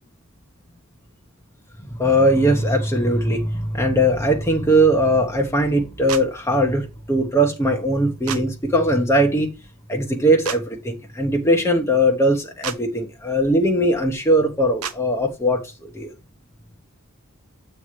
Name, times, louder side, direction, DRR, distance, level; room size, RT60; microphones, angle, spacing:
voice 1, 2.0-9.5 9.9-16.1, equal, 15° left, 1.0 m, -20 dB
sound 1, 6.1-6.2 8.3-8.4 10.4-10.6 12.6-12.8 14.8-15.0, right 8 dB, 90° right, 0.8 m, -29 dB
8.2 x 3.2 x 5.8 m
head